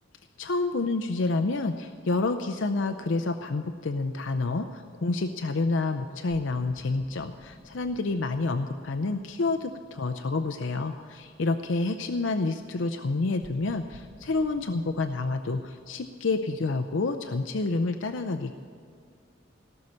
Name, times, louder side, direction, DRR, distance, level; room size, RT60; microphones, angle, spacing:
voice 1, 0.4-18.5, left 3 dB, 70° left, 7 dB, 0.6 m, -28 dB
sound 1, 6.3-11.3 13.4-15.6, equal, 30° left, 1.3 m, -53 dB
18.0 x 6.5 x 9.7 m, 2.3 s
head